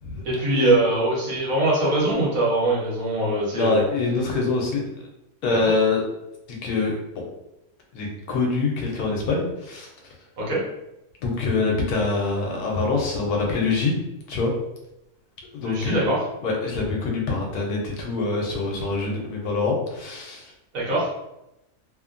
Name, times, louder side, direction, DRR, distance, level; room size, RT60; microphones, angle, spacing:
voice 1, 0.2-3.8 5.6-5.7 10.4-10.6 15.6-16.2 20.7-21.1, right 2 dB, 65° right, -5 dB, 1.3 m, -22 dB
voice 2, 3.5-4.8 5.4-6.1 6.5-7.2 7.9-9.9 11.2-13.9 14.3-14.5 15.5-16.1 16.4-20.5, left 3 dB, 80° left, 0 dB, 1.1 m, -24 dB
2.9 x 2.1 x 2.4 m, 0.90 s
omnidirectional pair, 1.6 m